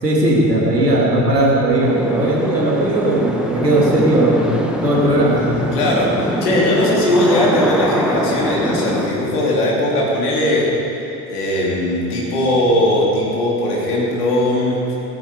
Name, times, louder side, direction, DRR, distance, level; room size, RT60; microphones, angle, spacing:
voice 1, 0.0-4.6 4.8-5.6, right 1 dB, 90° right, -3 dB, 2.5 m, -17 dB
sound 1, 1.8-9.1, equal, ahead, 1.6 m, -23 dB
voice 2, 5.7-10.7 11.3-14.8, left 1 dB, 70° left, -4 dB, 3.5 m, -18 dB
17.0 x 13.5 x 4.8 m, 3.0 s
figure-of-eight pair, 60°, 47 cm